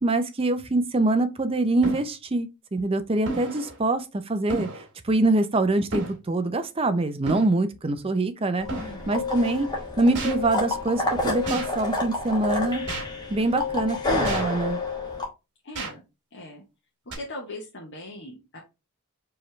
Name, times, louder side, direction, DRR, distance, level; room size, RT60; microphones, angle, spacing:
voice 1, 0.0-8.7 9.1-9.7 10.0-12.8 13.3-14.8, right 2 dB, 25° right, 0.5 m, -24 dB
sound 1, 0.6-0.7 1.8-2.1 3.3-3.8 4.5-4.9 5.9-6.2 7.3-7.5 8.7-8.9 10.2-10.4 11.5-11.7 12.9-13.1 14.2-14.6 15.8-15.9 17.1-17.2, right 2 dB, 55° right, 2.1 m, -32 dB
sound 2, 8.6-15.2, left 3 dB, 20° left, 1.2 m, -29 dB
voice 2, 8.7-9.1 15.6-16.0 16.3-16.6 17.0-18.6, left 1 dB, 55° left, 1.0 m, -40 dB
4.6 x 3.2 x 3.1 m
head